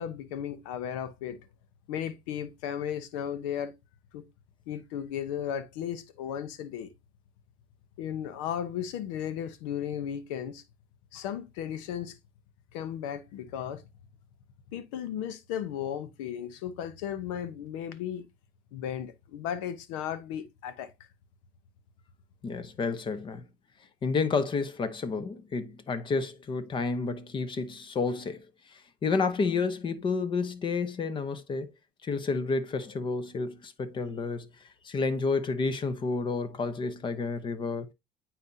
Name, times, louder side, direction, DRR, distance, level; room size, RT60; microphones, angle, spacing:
voice 1, 0.0-1.5 1.9-3.7 4.1-4.2 4.7-6.9 8.0-10.6 11.1-12.2 12.7-13.8 14.7-18.2 18.7-20.9, left 9 dB, 80° left, 0.9 m, -35 dB
voice 2, 22.4-23.4 24.0-31.7 32.0-37.9, left 4 dB, 30° left, 0.9 m, -30 dB
9.1 x 4.2 x 2.7 m
supercardioid pair, 105°, 16 cm